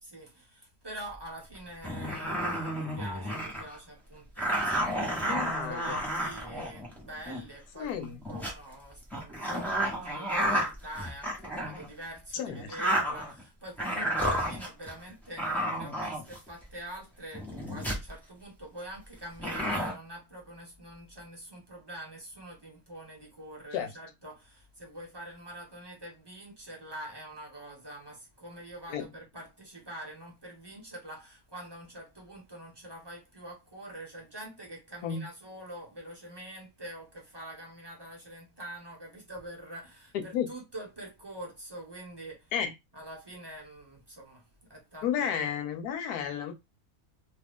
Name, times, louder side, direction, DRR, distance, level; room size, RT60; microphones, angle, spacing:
voice 1, 0.1-42.5 42.9-45.1 45.3-45.5, right 1 dB, 20° right, 1.0 m, -45 dB
sound 1, 1.4-1.5 1.8-3.8 4.4-7.5 8.0-8.5 9.1-11.9 12.5-13.4 13.8-14.9 15.4-16.6 17.3-18.1 19.4-19.9, equal, ahead, 0.7 m, -31 dB
voice 2, 5.3-6.0 7.8-8.2 12.3-12.7 23.7-23.9 28.9-29.1 35.0-35.2 40.1-40.5 42.5-42.7 45.0-46.5, left 8 dB, 80° left, 1.2 m, -32 dB
2.8 x 2.4 x 3.5 m
omnidirectional pair, 1.6 m